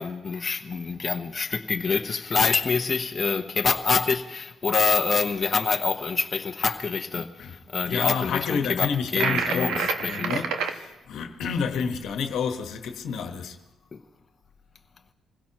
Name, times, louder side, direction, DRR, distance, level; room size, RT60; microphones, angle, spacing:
voice 1, 0.0-10.3 13.9-14.0, left 5 dB, 35° left, 0.8 m, -26 dB
voice 2, 7.1-7.6 7.8-13.6, left 6 dB, 75° left, 1.2 m, -30 dB
sound 1, 9.2-10.7, right 5 dB, 85° right, 1.1 m, -27 dB
26.0 x 16.5 x 3.0 m
cardioid pair, 90°, 0 cm